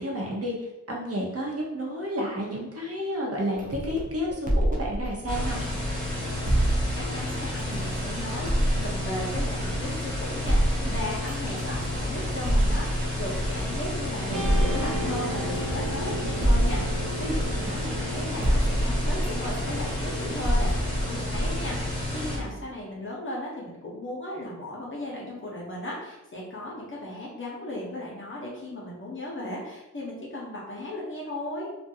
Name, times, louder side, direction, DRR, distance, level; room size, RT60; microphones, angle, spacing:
voice 1, 0.0-5.6 10.8-10.9, equal, 50° right, -2 dB, 0.8 m, -31 dB
sound 1, 3.6-6.0 6.5-10.0 10.5-14.0 14.4-18.1 18.4-22.5, equal, 25° right, 0.5 m, -27 dB
sound 2, 5.3-22.4, left 1 dB, ahead, 1.2 m, -31 dB
voice 2, 6.9-31.7, left 1 dB, 40° left, -5 dB, 0.7 m, -36 dB
Guitar, 14.3-20.8, right 1 dB, 75° right, 0.6 m, -36 dB
2.5 x 2.2 x 2.7 m, 0.94 s
wide cardioid pair, 70°, 31 cm